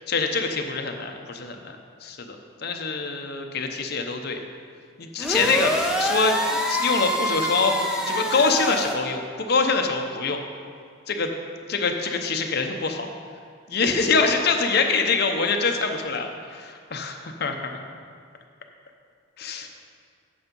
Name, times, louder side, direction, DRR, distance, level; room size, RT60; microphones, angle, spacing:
voice 1, 0.1-2.4 2.6-4.4 5.0-7.8 8.1-10.4 11.1-11.3 11.7-13.1 13.7-17.8 19.4-19.7, left 4 dB, 55° left, 4 dB, 0.8 m, -25 dB
sound 1, 5.2-8.9, equal, 5° right, 0.7 m, -26 dB
8.6 x 7.7 x 5.3 m, 2.2 s
head